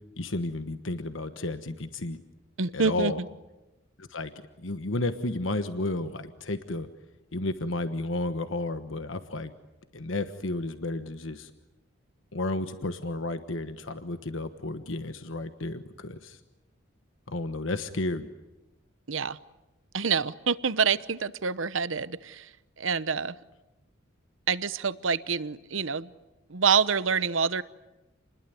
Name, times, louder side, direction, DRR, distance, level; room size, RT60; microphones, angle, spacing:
voice 1, 0.2-2.2 2.7-3.2 4.0-4.3 4.6-6.9 7.3-9.5 9.9-11.5 12.3-16.4 17.3-18.3, left 2 dB, 70° left, 9 dB, 1.3 m, -32 dB
voice 2, 2.6-3.1 19.1-19.4 19.9-22.5 22.8-23.3 24.5-26.1 26.5-27.6, right 6 dB, 75° right, 16 dB, 1.0 m, -27 dB
29.0 x 21.0 x 9.4 m, 1.0 s
head